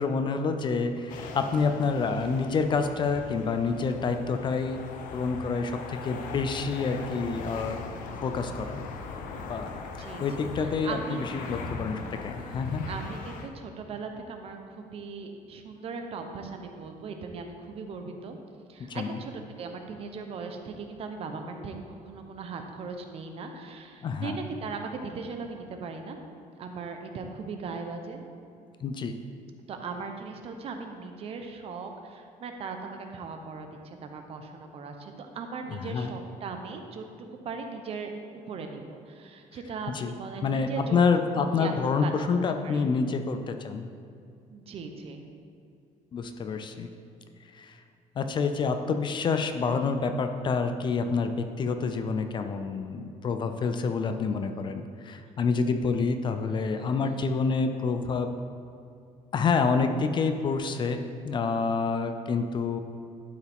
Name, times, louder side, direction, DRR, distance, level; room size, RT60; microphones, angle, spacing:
voice 1, 0.0-4.8 5.1-7.8 8.2-8.8 9.5-9.7 10.2-12.8 18.9-19.2 24.0-24.4 28.8-29.2 35.7-36.1 39.9-40.1 40.4-43.9 46.1-46.9 47.4-47.8 48.2-58.3 59.3-61.0 61.2-62.8, left 4 dB, 35° left, 7 dB, 0.4 m, -28 dB
sound 1, 1.1-13.5, left 4 dB, 75° left, 0.8 m, -40 dB
voice 2, 10.0-11.6 12.3-18.4 18.7-19.3 19.6-26.2 26.6-28.2 29.7-37.0 37.4-38.1 38.4-41.0 41.3-42.4 42.6-42.8 44.5-45.2 56.8-57.2, right 4 dB, 45° right, 5 dB, 0.8 m, -39 dB
12.0 x 4.9 x 3.5 m, 2.5 s
cardioid pair, 145°, 14 cm